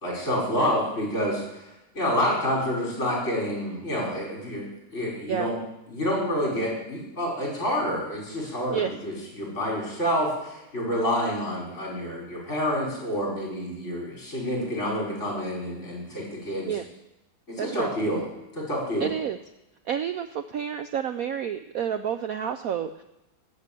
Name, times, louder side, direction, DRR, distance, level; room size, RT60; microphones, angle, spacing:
voice 1, 0.0-1.6 1.9-4.7 4.9-5.6 5.9-16.7 17.5-18.2 18.5-19.1, equal, 35° left, -3 dB, 5.2 m, -28 dB
voice 2, 17.6-17.9 19.0-19.4 19.9-23.0, right 8 dB, 75° right, 9 dB, 0.8 m, -29 dB
13.5 x 6.8 x 8.5 m, 0.95 s
omnidirectional pair, 2.1 m